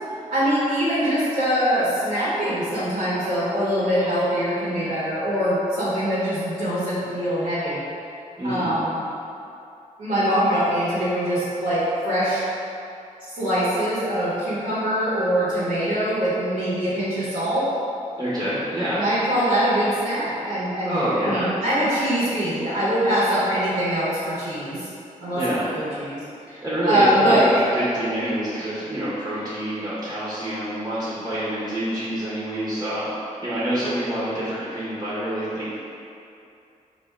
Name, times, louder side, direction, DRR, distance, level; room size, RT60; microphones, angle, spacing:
voice 1, 0.3-7.8 8.4-9.0 10.0-12.4 13.3-17.7 18.9-21.0 21.2-24.9 25.2-25.4 25.7-27.4 33.8-33.9, equal, 90° right, -12 dB, 1.1 m, -23 dB
voice 2, 8.4-8.8 18.1-19.1 20.8-21.6 25.3-25.7 26.6-35.8, right 1 dB, 25° right, -11 dB, 1.2 m, -26 dB
4.2 x 2.6 x 3.3 m, 2.6 s
cardioid pair, 75°, 14 cm